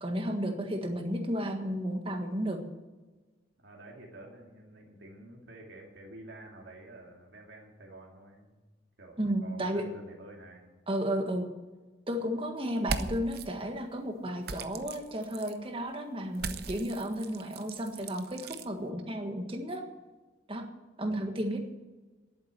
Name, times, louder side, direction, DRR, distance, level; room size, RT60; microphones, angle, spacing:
voice 1, 0.0-2.6 9.2-9.8 10.9-11.5 12.1-19.8 20.5-20.7 21.0-21.7, equal, 30° right, 4 dB, 1.6 m, -33 dB
voice 2, 3.6-8.6 9.0-10.7 21.1-21.3, right 2 dB, 85° right, -1 dB, 2.5 m, -50 dB
sound 1, 12.8-13.5 14.4-15.6 16.3-18.7, right 4 dB, 60° right, 0.8 m, -38 dB
11.0 x 8.7 x 9.5 m, 1.2 s
head